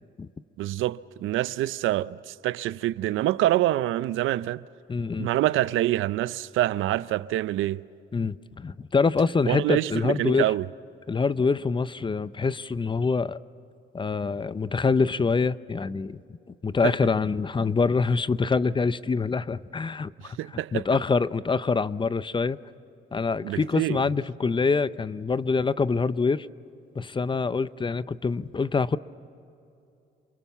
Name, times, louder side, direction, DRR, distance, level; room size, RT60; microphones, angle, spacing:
voice 1, 0.6-4.6 5.2-7.8 9.5-10.7 16.8-16.9 20.2-20.8 23.4-24.0, right 15 dB, 85° right, 0.6 m, -26 dB
voice 2, 4.9-5.3 8.1-10.5 11.1-13.4 13.9-16.2 16.6-20.1 20.7-22.6 23.1-26.5 27.0-29.0, left 4 dB, 25° left, 0.6 m, -25 dB
28.0 x 22.0 x 7.2 m
cardioid pair, 90°, 20 cm